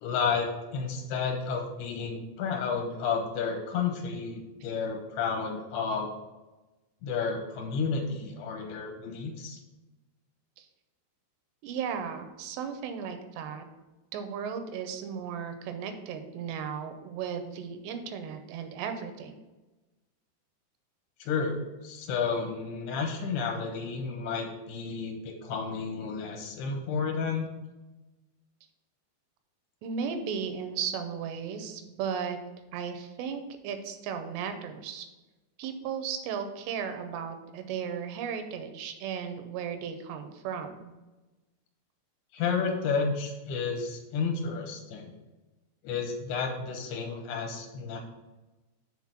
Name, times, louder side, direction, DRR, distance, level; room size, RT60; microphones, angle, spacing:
voice 1, 0.0-6.1 7.0-9.6 21.2-21.6 21.8-27.5 42.3-45.1 45.8-48.0, left 5 dB, 70° left, 2 dB, 3.0 m, -31 dB
voice 2, 11.6-13.6 14.1-19.3 29.8-32.4 32.7-35.1 35.6-40.9, right 7 dB, 80° right, 7 dB, 2.8 m, -35 dB
7.4 x 3.8 x 6.2 m, 1.1 s
omnidirectional pair, 5.0 m